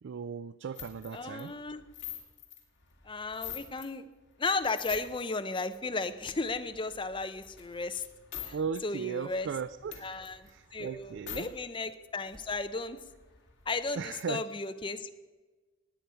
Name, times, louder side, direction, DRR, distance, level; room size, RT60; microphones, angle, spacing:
voice 1, 0.0-1.6 8.5-10.1 10.5-11.5 14.0-14.4, right 6 dB, 60° right, 15 dB, 0.4 m, -37 dB
sound 1, 0.7-3.9 4.3-5.3 5.7-8.5 8.8-8.9 9.2-11.4 11.8-11.9 12.1-14.1, left 10 dB, 60° left, 2.7 m, -46 dB
voice 2, 1.1-1.8 3.0-4.1 4.4-8.0 8.4-8.6 8.8-9.5 10.0-13.0 13.7-15.1, left 3 dB, 25° left, 9 dB, 0.7 m, -35 dB
19.0 x 9.0 x 5.7 m, 1.3 s
head